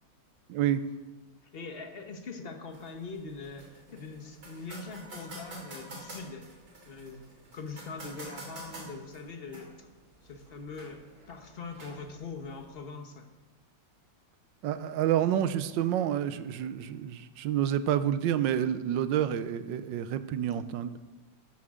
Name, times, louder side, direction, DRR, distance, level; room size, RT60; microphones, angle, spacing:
voice 1, 0.5-0.8 14.6-21.0, right 10 dB, 80° right, 12 dB, 1.3 m, -28 dB
voice 2, 1.5-6.5 6.8-7.2 7.5-9.9 10.2-11.0 11.3-13.3, left 4 dB, 40° left, 5 dB, 1.1 m, -42 dB
sound 1, 2.7-12.7, right 1 dB, 55° right, 3.3 m, -48 dB
12.5 x 12.0 x 3.7 m, 1.2 s
omnidirectional pair, 2.0 m